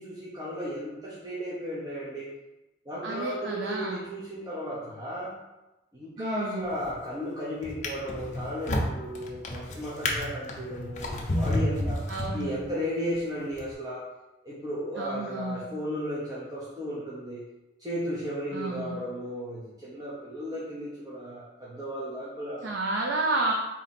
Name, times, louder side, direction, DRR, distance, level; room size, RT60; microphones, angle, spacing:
voice 1, 0.0-2.3 2.8-5.3 5.9-12.0 12.3-14.0 14.4-17.4 17.8-22.7, equal, 20° right, -9 dB, 0.8 m, -35 dB
voice 2, 3.0-4.0 6.2-6.7 12.1-12.5 15.0-15.6 18.5-19.0 22.6-23.5, right 2 dB, 75° right, 0 dB, 0.5 m, -31 dB
Drawer open or close, 6.6-7.1 7.6-12.8 13.5-13.7, left 1 dB, 40° left, 0.7 m, -31 dB
4.1 x 3.0 x 4.2 m, 1.0 s
head